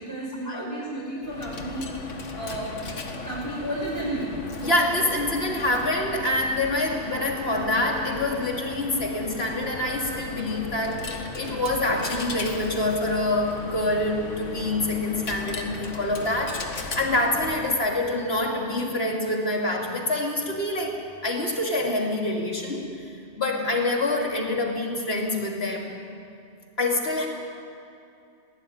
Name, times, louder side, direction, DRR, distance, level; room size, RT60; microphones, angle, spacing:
voice 1, 0.0-4.3, right 1 dB, 15° left, -6 dB, 4.9 m, -33 dB
Coin (dropping), 1.2-17.9, left 3 dB, 85° left, 2.1 m, -36 dB
voice 2, 4.6-23.0 23.4-25.9 26.8-27.3, left 1 dB, 55° left, 0 dB, 3.3 m, -26 dB
21.5 x 18.0 x 9.5 m, 2.5 s
omnidirectional pair, 1.3 m